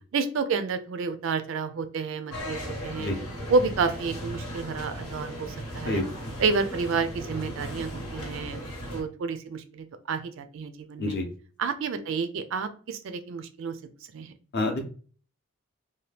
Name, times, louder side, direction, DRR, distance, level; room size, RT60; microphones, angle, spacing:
voice 1, 0.1-3.1 3.5-6.0 6.4-8.7 8.9-11.2 11.6-13.8 14.1-14.3, right 4 dB, 60° right, 9 dB, 0.3 m, -30 dB
sound 1, 2.3-9.0, equal, 90° left, 1.1 m, -37 dB
voice 2, 3.0-3.1 5.9-6.0 11.0-11.2 14.5-14.8, left 2 dB, 45° left, 3 dB, 0.6 m, -27 dB
2.7 x 2.2 x 3.2 m, 0.41 s
head